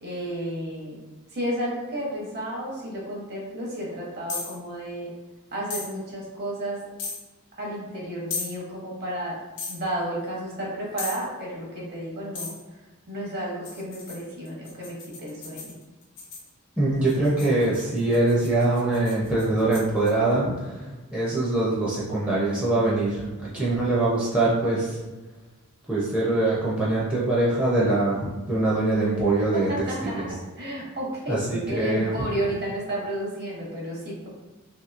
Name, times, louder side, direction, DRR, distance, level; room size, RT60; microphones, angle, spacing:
voice 1, 0.0-1.0 1.3-5.1 5.5-6.8 7.5-9.4 9.7-12.5 13.1-15.8 29.1-29.2 29.5-30.2 30.6-34.3, right 1 dB, 45° right, -4 dB, 0.9 m, -32 dB
sound 1, 4.3-4.6 5.7-5.9 7.0-7.2 8.3-8.5 9.6-9.8 11.0-11.3 12.3-12.6 13.6-16.5 17.1-20.1, left 4 dB, 55° left, 0.6 m, -36 dB
voice 2, 16.8-20.9 21.1-25.0 25.9-29.7 30.0-30.3 31.3-32.1, right 2 dB, 5° right, -8 dB, 0.5 m, -23 dB
2.8 x 2.7 x 2.4 m, 1.2 s
head